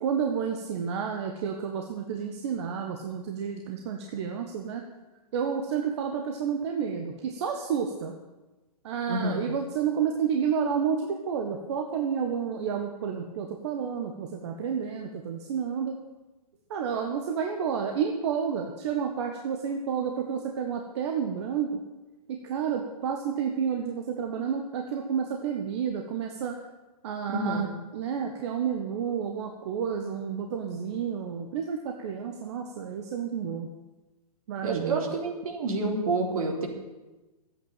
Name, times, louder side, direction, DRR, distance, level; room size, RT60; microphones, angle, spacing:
voice 1, 0.0-4.8 5.3-8.1 8.8-16.0 16.7-21.8 22.3-26.5 27.0-27.7 27.9-33.7 34.5-35.1, right 7 dB, 45° right, 3 dB, 1.4 m, -30 dB
voice 2, 9.1-9.5 27.3-27.7 34.6-36.7, right 2 dB, 60° right, 1 dB, 3.9 m, -28 dB
13.5 x 9.0 x 9.1 m, 1.1 s
hypercardioid pair, 160°, 20 cm